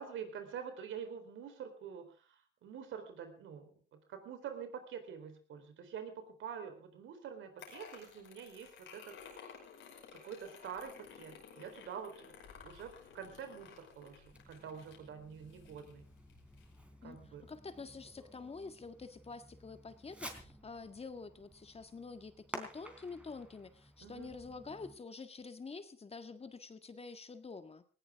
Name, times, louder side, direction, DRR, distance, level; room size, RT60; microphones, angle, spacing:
voice 1, 0.0-9.4 10.1-16.1 17.0-17.4 24.0-24.3, right 7 dB, 80° right, 7 dB, 4.0 m, -47 dB
sound 1, 7.6-16.8, left 6 dB, 80° left, 5.6 m, -55 dB
Fireworks, 14.3-25.0, equal, 5° right, 3.7 m, -53 dB
voice 2, 17.5-27.8, left 4 dB, 30° left, 9 dB, 1.8 m, -47 dB
19.0 x 17.0 x 3.7 m, 0.38 s
cardioid pair, 90°, 20 cm